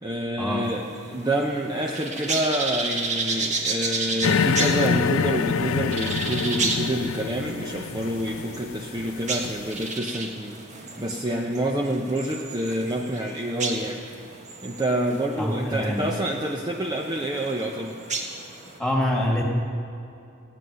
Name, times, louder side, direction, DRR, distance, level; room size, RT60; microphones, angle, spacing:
voice 1, 0.0-14.0 14.6-18.0, right 1 dB, 20° right, 0 dB, 0.7 m, -27 dB
sound 1, 0.6-18.8, right 3 dB, 35° right, 1.4 m, -33 dB
sound 2, 4.2-9.8, left 6 dB, 85° left, 0.4 m, -26 dB
voice 2, 15.4-16.1 18.8-19.4, left 1 dB, 5° left, -1 dB, 2.1 m, -25 dB
16.5 x 9.2 x 6.4 m, 2.7 s
head